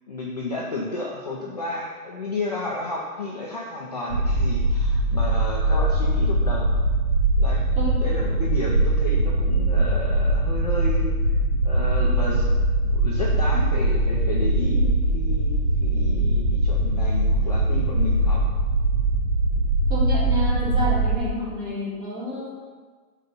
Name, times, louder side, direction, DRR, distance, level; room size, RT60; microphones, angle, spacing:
voice 1, 0.1-6.7 7.4-7.6 8.0-11.1 11.6-12.5 12.9-18.4, left 2 dB, 30° left, -4 dB, 0.4 m, -32 dB
sound 1, 4.1-21.2, right 1 dB, 75° right, 1.4 m, -21 dB
voice 2, 19.9-22.5, left 2 dB, 25° right, -6 dB, 2.1 m, -29 dB
7.6 x 4.1 x 5.3 m, 1.4 s
hypercardioid pair, 155°, 47 cm